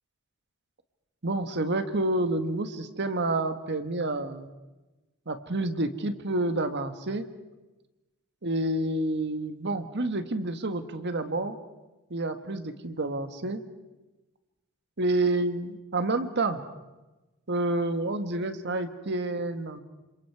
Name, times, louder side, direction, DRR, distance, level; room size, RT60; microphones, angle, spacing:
voice 1, 1.2-4.5 5.3-7.3 8.4-11.6 12.1-13.6 15.0-16.6 17.5-19.8, right 2 dB, 55° right, 9 dB, 1.6 m, -29 dB
29.0 x 26.5 x 4.8 m, 1.1 s
head